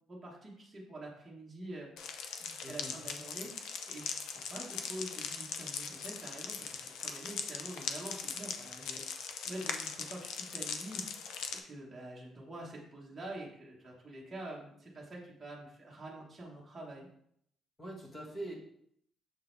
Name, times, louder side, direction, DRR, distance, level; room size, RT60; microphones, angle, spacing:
voice 1, 0.1-9.0 9.4-11.3 11.6-17.1, right 1 dB, 15° right, -5 dB, 1.2 m, -46 dB
sound 1, 2.0-11.6, left 6 dB, 85° left, 0.6 m, -40 dB
voice 2, 2.6-2.9 17.8-18.5, right 1 dB, 20° left, -1 dB, 1.4 m, -43 dB
6.7 x 4.0 x 3.9 m, 0.70 s
cardioid pair, 170°, 0 cm